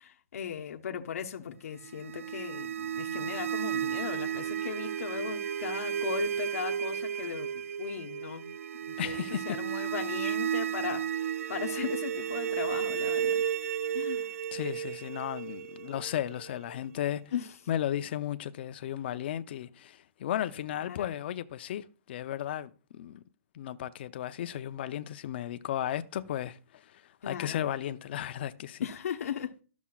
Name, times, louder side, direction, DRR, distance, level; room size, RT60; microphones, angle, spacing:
voice 1, 0.0-8.5 8.9-13.4 13.9-14.3 17.3-17.5 20.8-21.2 27.2-27.6 28.8-29.6, left 8 dB, 75° left, 1.0 m, -38 dB
sound 1, 1.8-16.8, right 9 dB, 70° right, 0.4 m, -33 dB
voice 2, 9.0-9.6 14.5-17.2 17.7-23.2 23.5-28.9, left 11 dB, 45° left, 0.6 m, -35 dB
12.0 x 7.0 x 2.4 m
hypercardioid pair, 170°, 8 cm